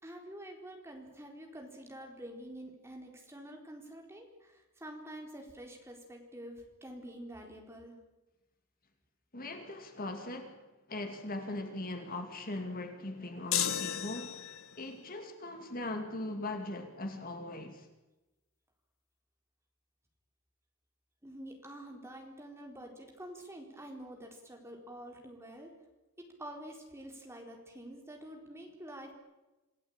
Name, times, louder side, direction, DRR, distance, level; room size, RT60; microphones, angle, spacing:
voice 1, 0.0-8.0 21.2-25.7 26.4-29.1, right 1 dB, 10° right, 4.2 m, -47 dB
voice 2, 9.3-10.6 10.9-14.4 14.8-17.9, left 2 dB, 40° left, 2.4 m, -40 dB
sound 1, 13.5-14.8, left 9 dB, 65° left, 1.4 m, -33 dB
27.5 x 16.5 x 8.9 m
head